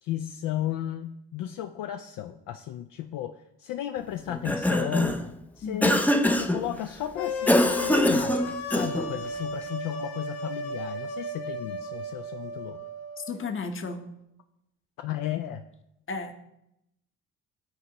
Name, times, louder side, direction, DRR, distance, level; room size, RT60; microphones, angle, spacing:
voice 1, 0.0-5.2 5.6-12.8 15.0-15.6, left 12 dB, 60° left, 7 dB, 0.5 m, -34 dB
Cough, 4.3-5.3 5.8-6.6 7.5-9.1, left 1 dB, 5° left, 0.5 m, -23 dB
voice 2, 5.6-6.0 13.2-14.1 16.1-16.3, left 5 dB, 35° left, 7 dB, 0.9 m, -33 dB
sound 1, 7.2-13.3, left 1 dB, 80° left, 0.8 m, -34 dB
10.5 x 4.2 x 2.9 m, 0.85 s
hypercardioid pair, 60°, 37 cm